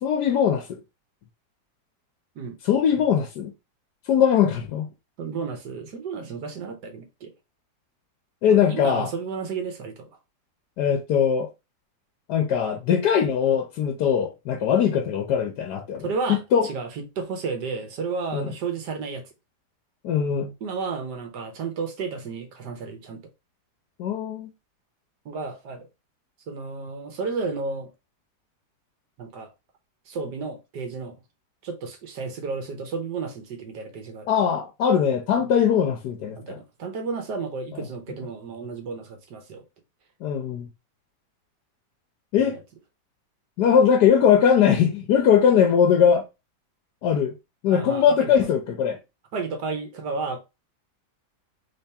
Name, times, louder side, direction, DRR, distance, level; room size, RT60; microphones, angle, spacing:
voice 1, 0.0-0.8 2.6-3.5 4.1-4.9 8.4-9.1 10.8-11.5 12.3-16.7 18.3-18.5 20.0-20.5 24.0-24.5 34.3-36.4 37.7-37.8 40.2-40.7 42.3-42.6 43.6-46.2 47.0-47.3 47.6-49.0, left 8 dB, 80° left, 1.3 m, -21 dB
voice 2, 5.2-7.3 8.5-10.1 16.0-19.2 20.6-23.2 25.2-25.9 26.5-27.9 29.2-29.5 30.1-31.2 31.6-34.3 35.4-35.5 36.4-39.6 42.4-42.6 47.7-48.3 49.3-50.4, right 4 dB, 80° right, 1.6 m, -32 dB
3.6 x 3.4 x 4.2 m
omnidirectional pair, 1.8 m